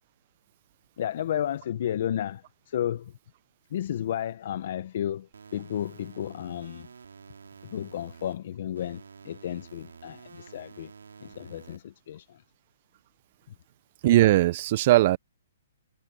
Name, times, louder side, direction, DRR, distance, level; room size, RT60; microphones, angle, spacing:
voice 1, 1.0-3.1 3.7-6.9 7.7-10.9 11.2-12.4, left 10 dB, 55° left, 0.9 m, -32 dB
sound 1, 5.3-8.3 8.8-11.8, right 5 dB, 90° right, 3.2 m, -49 dB
voice 2, 14.0-15.2, right 15 dB, 40° right, 0.5 m, -19 dB
hypercardioid pair, 150°, 0 cm